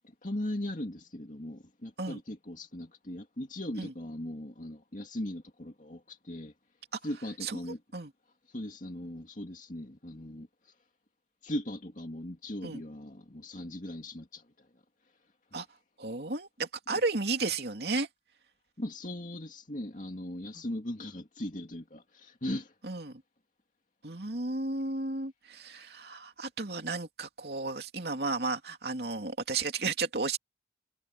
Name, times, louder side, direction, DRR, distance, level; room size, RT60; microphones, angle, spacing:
voice 1, 0.2-6.5 7.0-7.8 8.5-10.5 11.4-14.4 18.8-22.7, left 1 dB, 45° left, 2.3 m, -38 dB
voice 2, 16.0-18.1 20.5-20.6 22.8-23.2 24.0-30.4, right 3 dB, 65° right, 2.8 m, -33 dB
head